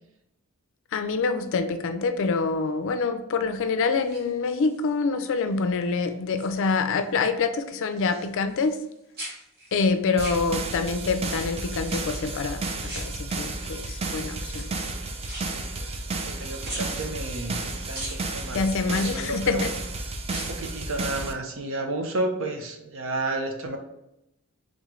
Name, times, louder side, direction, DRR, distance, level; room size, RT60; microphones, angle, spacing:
voice 1, 0.9-8.8 9.7-14.7 18.5-19.7, left 4 dB, 60° left, 8 dB, 0.4 m, -26 dB
sound 1, 3.9-4.9 5.4-5.8 6.1-7.1 7.3-8.9 9.1-10.9 11.8-12.4 12.8-13.7 14.4-16.4 16.6-17.6 17.9-18.2 18.9-19.7 20.2-20.7 21.0-21.1, right 1 dB, 50° right, 1.5 m, -41 dB
sound 2, 10.2-21.3, right 3 dB, 30° right, 0.4 m, -32 dB
voice 2, 15.8-19.6 20.3-23.8, right 2 dB, 65° right, 4 dB, 0.7 m, -32 dB
3.5 x 3.1 x 3.7 m, 0.83 s
head